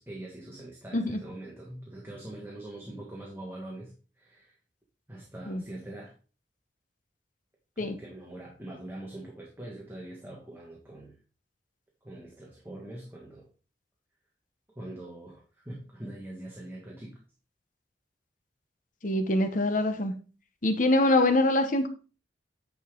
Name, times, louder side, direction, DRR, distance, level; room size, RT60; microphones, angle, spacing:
voice 1, 0.0-4.5 5.1-6.1 7.7-11.1 12.0-13.5 14.7-17.2, right 1 dB, 15° right, -2 dB, 1.6 m, -43 dB
voice 2, 19.0-20.1 20.6-21.9, left 1 dB, 45° left, 7 dB, 0.9 m, -24 dB
9.6 x 5.5 x 3.7 m, 0.36 s
head